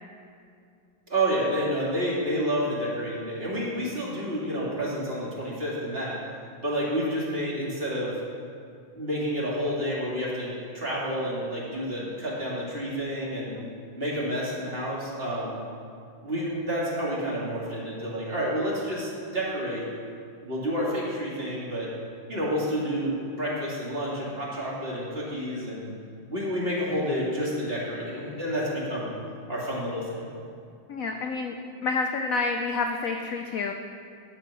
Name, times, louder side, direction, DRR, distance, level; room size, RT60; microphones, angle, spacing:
voice 1, 1.1-6.2 6.6-8.1 9.0-13.5 14.0-15.6 16.2-19.9 20.4-21.9 22.3-25.9 26.3-29.1 29.5-30.3, equal, 30° right, -5 dB, 2.2 m, -29 dB
voice 2, 30.9-31.5 31.8-33.7, left 4 dB, 75° left, 4 dB, 0.7 m, -28 dB
11.0 x 7.4 x 5.4 m, 2.3 s
omnidirectional pair, 2.1 m